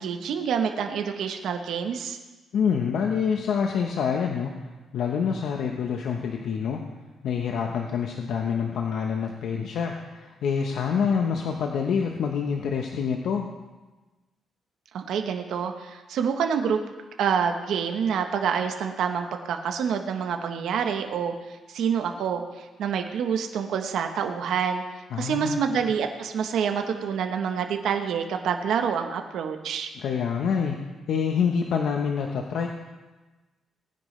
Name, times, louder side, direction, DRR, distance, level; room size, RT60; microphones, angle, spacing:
voice 1, 0.0-2.2 14.9-16.8 17.2-24.8 25.2-29.9, right 7 dB, 75° right, 5 dB, 1.0 m, -27 dB
voice 2, 2.5-4.5 4.9-6.8 7.2-13.5 25.1-25.6 30.0-30.8 31.1-32.7, left 6 dB, 75° left, 2 dB, 1.0 m, -26 dB
19.0 x 10.0 x 3.3 m, 1.2 s
cardioid pair, 110°, 0 cm